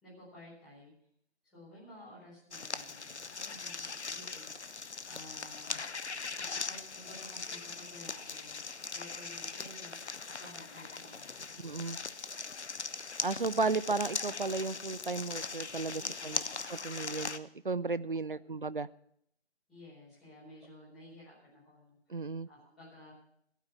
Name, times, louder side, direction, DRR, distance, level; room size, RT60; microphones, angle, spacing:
voice 1, 0.0-0.9 1.4-5.8 6.1-8.6 8.9-10.0 10.4-11.6 15.9-16.5 18.3-18.5 19.7-22.2 22.5-23.1, left 1 dB, ahead, -13 dB, 4.7 m, -54 dB
sound 1, 2.5-17.4, left 4 dB, 75° left, 0.9 m, -40 dB
voice 2, 11.6-12.0 13.2-16.4 16.7-18.9 22.1-22.5, right 3 dB, 50° right, 17 dB, 0.5 m, -34 dB
15.5 x 9.2 x 7.1 m, 0.70 s
figure-of-eight pair, 165°, 34 cm